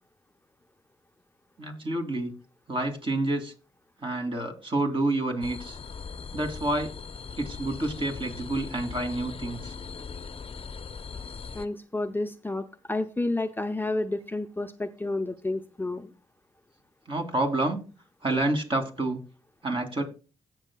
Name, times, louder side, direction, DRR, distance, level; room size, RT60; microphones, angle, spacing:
voice 1, 1.6-2.3 2.7-3.5 4.0-5.8 6.3-6.9 7.4-9.7 17.1-17.8 18.2-19.2 19.6-20.0, right 2 dB, 35° right, 3 dB, 2.5 m, -28 dB
sound 1, 5.4-11.7, left 5 dB, 40° left, 0.8 m, -40 dB
voice 2, 11.5-16.1, left 2 dB, 15° left, 8 dB, 0.6 m, -30 dB
16.5 x 6.3 x 2.3 m, 0.34 s
hypercardioid pair, 45°, 14 cm